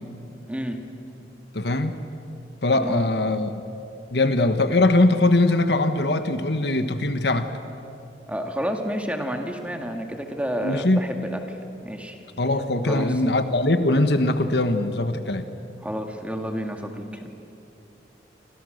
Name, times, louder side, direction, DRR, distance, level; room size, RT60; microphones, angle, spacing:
voice 1, 0.5-0.8 2.7-3.0 8.3-11.6 11.8-12.2 12.9-13.1 15.8-17.3, equal, 10° right, 3 dB, 2.1 m, -30 dB
voice 2, 1.5-1.9 2.6-3.5 4.1-7.5 10.6-11.0 12.4-15.5, left 2 dB, 70° left, 9 dB, 1.4 m, -21 dB
29.5 x 25.5 x 6.6 m, 2.7 s
head